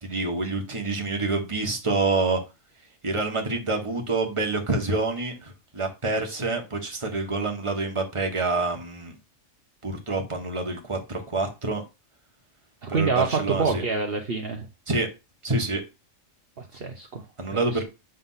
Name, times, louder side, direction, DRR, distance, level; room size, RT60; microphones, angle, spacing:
voice 1, 0.0-2.4 3.0-9.1 9.8-11.8 12.9-13.8 14.9-15.1 15.4-15.8 17.4-17.8, right 3 dB, 25° right, 3 dB, 1.5 m, -27 dB
voice 2, 12.8-14.7 16.6-17.2 17.5-17.8, right 4 dB, 50° right, 3 dB, 1.1 m, -27 dB
7.9 x 3.7 x 5.6 m, 0.27 s
omnidirectional pair, 1.3 m